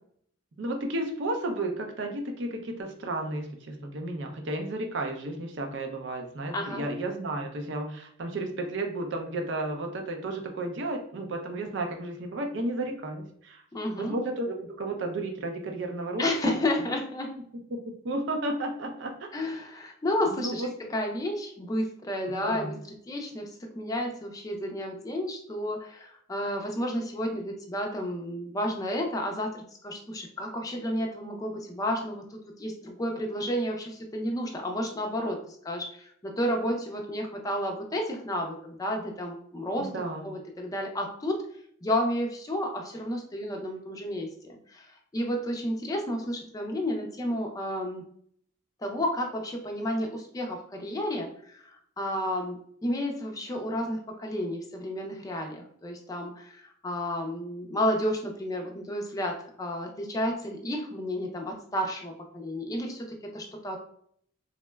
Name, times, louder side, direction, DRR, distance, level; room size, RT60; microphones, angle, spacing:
voice 1, 0.6-13.6 14.0-16.5 17.7-17.8 18.0-19.1 20.3-20.7 22.3-22.7 39.8-40.3, right 2 dB, 60° right, 4 dB, 0.4 m, -33 dB
voice 2, 6.5-6.8 13.7-14.2 16.2-17.3 19.3-22.7 23.1-23.5 23.8-40.0 40.2-41.4 41.8-44.3 44.7-48.0 48.8-51.7 52.0-63.8, left 1 dB, 15° left, 2 dB, 0.3 m, -31 dB
3.7 x 2.1 x 2.2 m, 0.65 s
head